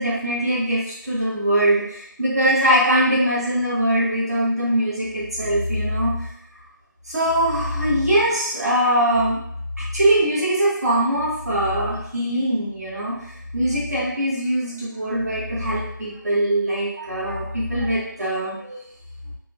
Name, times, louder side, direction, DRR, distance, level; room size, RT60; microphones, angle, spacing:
voice 1, 0.0-6.3 7.0-9.4 9.8-18.8, right 1 dB, 50° right, -7 dB, 0.9 m, -22 dB
2.9 x 2.1 x 2.5 m, 0.75 s
figure-of-eight pair, 170°, 11 cm